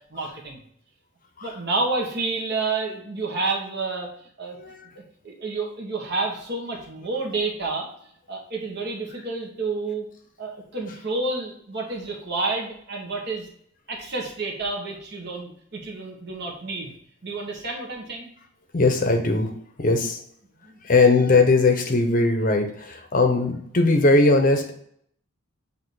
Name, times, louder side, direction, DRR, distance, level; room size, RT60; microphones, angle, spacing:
voice 1, 0.1-0.6 1.4-4.1 4.4-4.6 4.9-7.9 8.3-10.1 10.4-13.5 13.9-17.0 17.2-18.3 20.6-20.8, right 3 dB, 50° right, 0 dB, 1.4 m, -29 dB
voice 2, 18.7-20.2 20.8-24.8, left 3 dB, 40° left, 4 dB, 0.8 m, -20 dB
7.5 x 2.8 x 4.7 m, 0.68 s
head